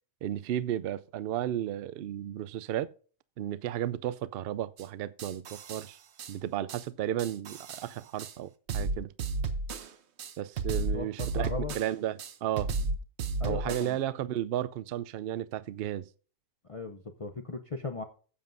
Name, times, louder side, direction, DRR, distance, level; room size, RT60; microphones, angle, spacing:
voice 1, 0.2-2.9 3.4-6.0 6.3-9.1 10.4-12.7 13.4-16.1, right 12 dB, 85° right, 0.5 m, -33 dB
sound 1, 4.8-4.9 5.2-5.9 6.2-6.3 6.7-6.8 7.2-7.9 8.2-8.3 8.7-9.9 10.2-11.9 12.2-13.9, right 3 dB, 55° right, 0.9 m, -33 dB
voice 2, 10.9-11.7 13.4-14.0 16.6-18.0, left 4 dB, 60° left, 0.3 m, -37 dB
15.0 x 7.2 x 2.6 m
omnidirectional pair, 1.6 m